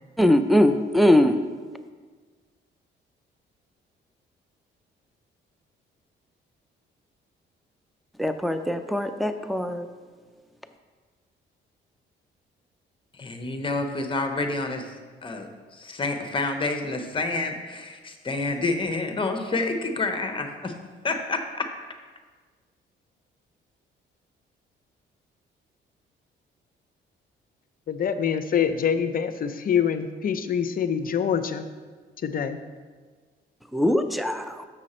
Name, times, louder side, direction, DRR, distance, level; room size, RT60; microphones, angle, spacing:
voice 1, 0.2-1.4 8.2-9.9 33.7-34.7, left 1 dB, ahead, 8 dB, 0.5 m, -21 dB
voice 2, 13.1-14.9 15.2-20.7 21.0-21.7, left 3 dB, 25° left, 6 dB, 0.9 m, -28 dB
voice 3, 27.9-31.7 32.2-32.6, left 7 dB, 45° left, 10 dB, 0.6 m, -25 dB
6.8 x 6.1 x 4.3 m, 1.5 s
cardioid pair, 90°, 20 cm